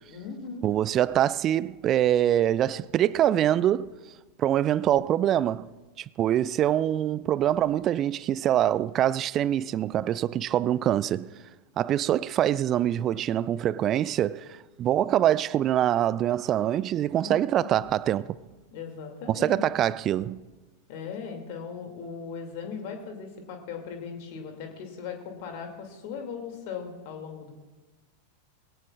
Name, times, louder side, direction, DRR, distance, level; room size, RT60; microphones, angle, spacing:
voice 1, 0.1-0.7 17.2-17.9 18.7-19.6 20.9-27.5, left 6 dB, 45° left, 2.4 m, -38 dB
voice 2, 0.6-3.9 4.4-5.7 6.0-11.3 11.8-18.4 19.3-20.4, right 11 dB, 30° right, 0.3 m, -24 dB
20.5 x 17.0 x 2.4 m
figure-of-eight pair, 90°, 0 cm